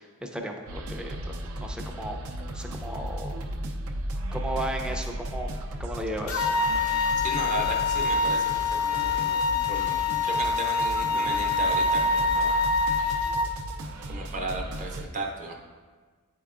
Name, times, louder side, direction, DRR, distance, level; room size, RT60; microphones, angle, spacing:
voice 1, 0.0-2.2 2.5-3.4 4.3-5.5 5.8-6.5, right 1 dB, 5° right, 2 dB, 0.4 m, -35 dB
sound 1, 0.7-15.1, right 1 dB, 75° right, 0.5 m, -35 dB
sound 2, 6.3-13.5, left 3 dB, 85° left, 0.7 m, -25 dB
voice 2, 7.2-9.4 9.7-12.6 14.1-15.5, right 2 dB, 35° right, 1 dB, 0.7 m, -35 dB
9.2 x 4.5 x 2.4 m, 1.5 s
head